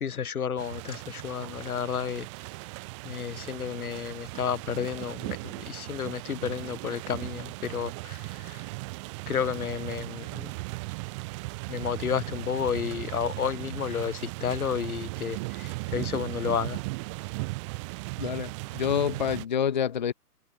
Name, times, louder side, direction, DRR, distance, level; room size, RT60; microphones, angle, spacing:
voice 1, 0.0-2.2 3.1-5.4 5.7-7.9 9.3-10.2 11.7-15.4 15.9-16.8, left 7 dB, 65° left, 2.1 m, -31 dB
sound 1, 0.6-19.4, right 27 dB, 20° right, 3.4 m, -37 dB
voice 2, 18.2-20.1, left 8 dB, 30° left, 0.9 m, -27 dB
hypercardioid pair, 165°, 47 cm